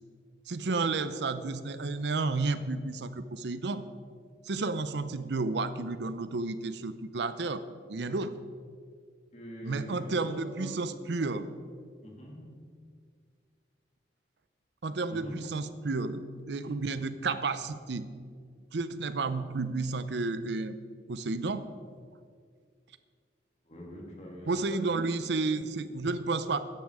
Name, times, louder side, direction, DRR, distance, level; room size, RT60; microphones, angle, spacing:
voice 1, 0.5-3.9 4.5-7.6 7.9-8.4 9.6-11.5 14.8-18.1 18.7-20.8 21.1-21.7 24.5-26.7, right 3 dB, 70° right, 12 dB, 0.6 m, -31 dB
voice 2, 9.3-10.8 12.0-12.6 15.1-15.7 23.6-25.1, equal, 35° left, -1 dB, 2.7 m, -43 dB
14.0 x 9.9 x 4.8 m, 2.1 s
head